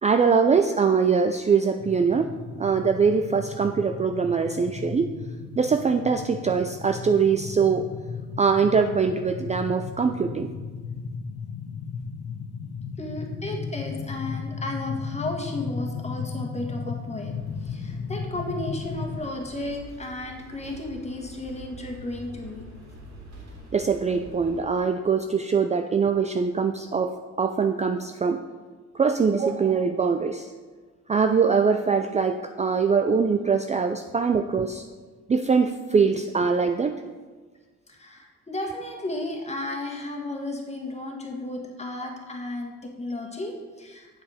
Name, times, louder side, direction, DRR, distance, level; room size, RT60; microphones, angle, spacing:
voice 1, 0.0-5.1 5.6-7.9 8.4-10.5 23.7-28.4 28.9-30.5 31.1-34.8 35.3-37.0, right 5 dB, 25° right, 7 dB, 0.4 m, -23 dB
sound 1, 1.8-19.2, left 5 dB, 55° left, 0.9 m, -35 dB
voice 2, 13.0-17.3 17.6-22.7 37.9-44.2, left 2 dB, 20° left, 1 dB, 1.8 m, -34 dB
sound 2, 17.3-24.6, right 1 dB, 65° right, 3.1 m, -45 dB
7.5 x 7.3 x 5.0 m, 1.4 s
cardioid pair, 90°, 30 cm